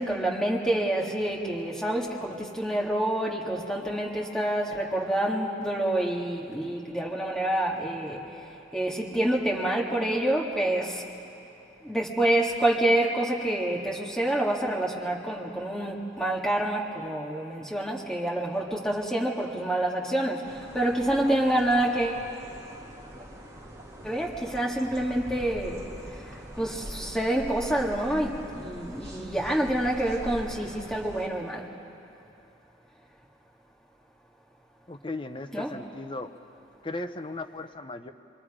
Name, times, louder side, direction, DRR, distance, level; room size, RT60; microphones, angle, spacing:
voice 1, 0.0-11.0 11.8-22.2 24.0-25.8 26.1-31.6 35.5-35.7, right 1 dB, 5° left, -3 dB, 2.0 m, -27 dB
sound 1, 20.4-31.3, equal, 15° right, 2.1 m, -43 dB
voice 2, 34.9-36.3 36.8-38.1, left 2 dB, 25° left, 7 dB, 0.7 m, -36 dB
25.5 x 24.0 x 5.0 m, 2.7 s
head